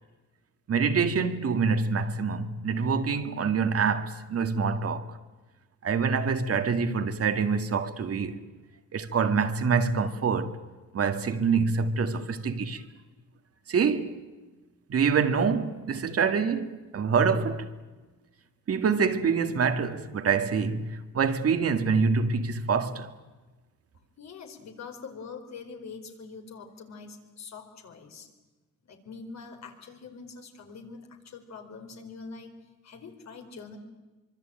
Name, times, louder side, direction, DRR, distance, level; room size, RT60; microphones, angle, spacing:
voice 1, 0.7-5.2 5.8-8.4 8.9-10.6 10.9-12.8 13.7-14.2 14.9-17.7 18.7-23.1, right 5 dB, 50° right, 2.1 m, -26 dB
voice 2, 24.2-28.3 28.9-32.5 32.8-33.8, left 5 dB, 60° left, 4.6 m, -44 dB
25.0 x 23.5 x 9.0 m
cardioid pair, 90°, 30 cm